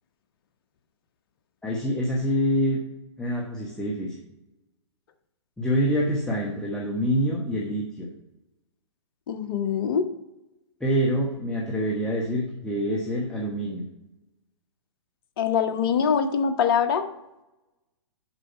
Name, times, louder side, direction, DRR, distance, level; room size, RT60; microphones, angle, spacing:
voice 1, 1.6-2.8 3.2-4.2 5.6-8.1 10.8-13.8, equal, 5° left, -3 dB, 1.1 m, -26 dB
voice 2, 9.3-10.1 15.4-17.1, left 7 dB, 50° left, 8 dB, 0.9 m, -23 dB
7.1 x 5.4 x 5.6 m, 0.93 s
hypercardioid pair, 125°, 15 cm